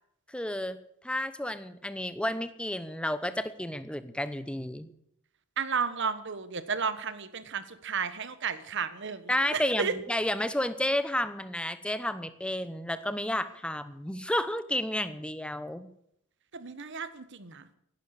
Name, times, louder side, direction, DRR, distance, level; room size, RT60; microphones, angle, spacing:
voice 1, 0.3-0.8 1.0-4.9 9.3-15.9, left 1 dB, 5° left, 12 dB, 0.9 m, -31 dB
voice 2, 5.6-9.9 16.5-17.6, right 6 dB, 60° right, 13 dB, 1.3 m, -33 dB
16.5 x 11.5 x 6.6 m, 0.73 s
head